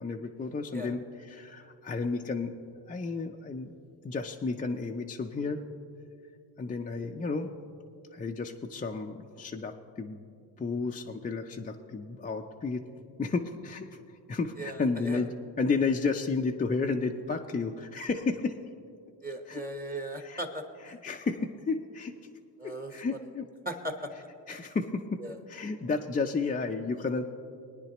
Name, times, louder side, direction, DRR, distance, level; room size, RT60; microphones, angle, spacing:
voice 1, 0.0-2.6 2.9-3.7 4.0-5.6 6.6-7.5 8.1-10.2 10.6-12.8 13.2-18.6 19.5-19.6 20.2-20.4 20.9-22.3 22.6-23.5 24.5-25.2 25.5-27.3, left 4 dB, 20° left, 2 dB, 0.4 m, -32 dB
voice 2, 14.6-15.2 19.2-21.0 22.6-22.9 23.6-23.9 25.2-25.4, right 1 dB, 20° right, 5 dB, 1.0 m, -37 dB
21.0 x 9.7 x 3.0 m, 2.4 s
cardioid pair, 95°, 46 cm